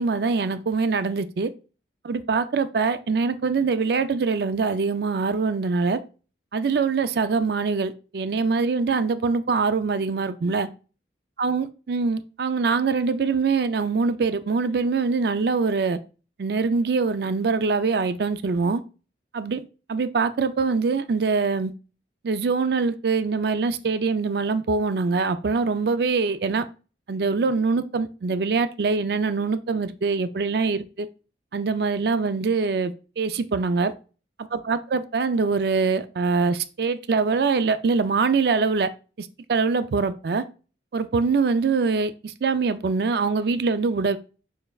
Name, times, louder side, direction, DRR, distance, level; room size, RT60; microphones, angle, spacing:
voice 1, 0.0-1.5 2.0-6.0 6.5-10.7 11.4-16.0 16.4-18.8 19.3-19.6 19.9-21.7 22.2-26.6 27.1-31.1 31.5-33.9 34.4-38.9 39.2-40.4 40.9-44.2, right 4 dB, 55° right, 0.4 m, -23 dB
6.5 x 3.3 x 2.3 m
head